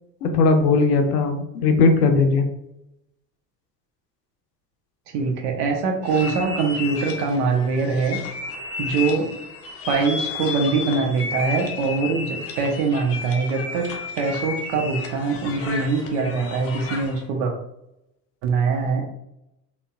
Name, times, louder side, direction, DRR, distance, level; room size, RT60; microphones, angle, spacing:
voice 1, 0.2-2.4, left 4 dB, 70° left, 5 dB, 0.7 m, -18 dB
voice 2, 5.1-8.2 8.8-9.3 9.9-13.9 14.2-17.5 18.4-19.0, right 4 dB, 55° right, 2 dB, 0.8 m, -23 dB
sound 1, 6.0-17.2, left 4 dB, 30° left, 0.6 m, -33 dB
3.9 x 2.2 x 2.3 m, 0.84 s
figure-of-eight pair, 65°, 49 cm